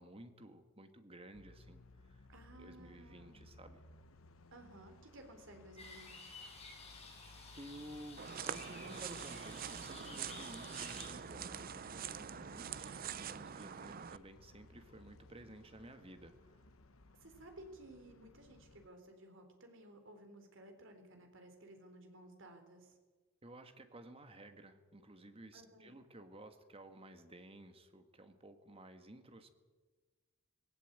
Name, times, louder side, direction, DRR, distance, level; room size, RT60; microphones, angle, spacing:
voice 1, 0.0-1.8 2.1-2.3 2.6-3.8 7.6-16.6 23.4-29.5, right 1 dB, 25° right, 8 dB, 1.6 m, -54 dB
sound 1, 1.3-18.9, left 2 dB, 75° left, 1.1 m, -60 dB
voice 2, 2.3-3.5 4.5-6.3 17.2-23.0 25.5-26.0, right 1 dB, 60° right, 6 dB, 3.9 m, -56 dB
sound 2, 5.8-11.1, left 3 dB, 30° left, 7.3 m, -53 dB
sound 3, 8.2-14.2, right 8 dB, 45° right, 0.5 m, -45 dB
19.0 x 17.5 x 8.9 m, 1.3 s
head